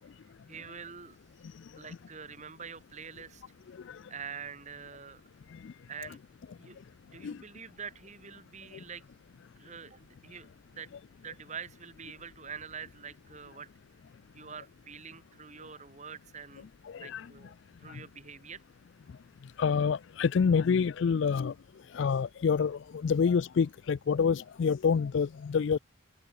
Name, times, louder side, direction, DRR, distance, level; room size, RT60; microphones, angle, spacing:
voice 1, 0.5-1.2 1.8-3.4 4.1-5.2 5.9-6.2 6.6-6.8 7.1-9.0 9.6-10.9 11.2-13.7 14.3-16.7 16.9-17.5 17.8-18.6, right 6 dB, 35° right, 1.8 m, -45 dB
voice 2, 19.6-21.5 22.0-25.8, left 6 dB, 60° left, 0.3 m, -27 dB
head